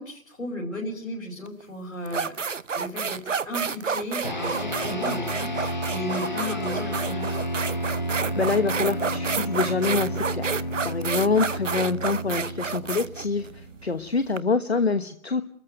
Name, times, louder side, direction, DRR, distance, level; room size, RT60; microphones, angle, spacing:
voice 1, 0.0-7.3, left 1 dB, 75° left, -3 dB, 6.5 m, -35 dB
sound 1, 1.5-1.6 2.1-14.4, right 5 dB, 65° right, 0.8 m, -30 dB
sound 2, 4.2-13.9, equal, 35° left, 1.3 m, -31 dB
voice 2, 8.3-15.4, left 4 dB, 50° left, 9 dB, 1.2 m, -26 dB
29.0 x 14.0 x 7.9 m, 0.64 s
figure-of-eight pair, 180°, 40 cm